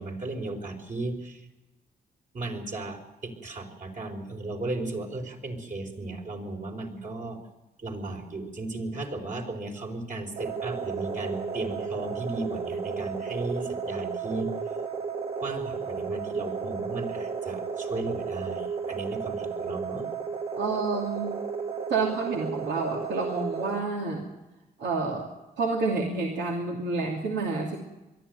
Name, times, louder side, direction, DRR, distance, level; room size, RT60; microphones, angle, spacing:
voice 1, 0.0-1.4 2.3-7.4 7.8-14.5 15.4-20.1, right 2 dB, 50° right, 2 dB, 4.8 m, -35 dB
sound 1, 10.4-23.8, right 5 dB, 35° right, 1.6 m, -33 dB
voice 2, 20.6-21.3 21.9-24.2 24.8-25.3 25.6-27.8, right 3 dB, 85° right, -1 dB, 2.8 m, -29 dB
22.0 x 13.5 x 9.3 m, 1.0 s
cardioid pair, 80°, 17 cm